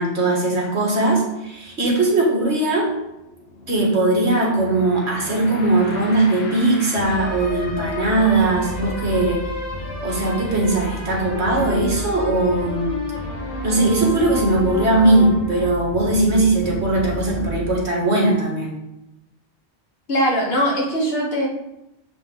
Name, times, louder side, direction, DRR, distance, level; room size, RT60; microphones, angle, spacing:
voice 1, 0.0-2.9 3.7-9.4 10.0-13.0 13.6-18.8, right 2 dB, 65° right, -2 dB, 1.9 m, -19 dB
sound 1, 2.5-17.7, left 1 dB, 85° left, 1.5 m, -31 dB
voice 2, 20.1-21.5, equal, 55° left, -3 dB, 1.7 m, -20 dB
7.2 x 5.1 x 3.7 m, 0.89 s
omnidirectional pair, 1.3 m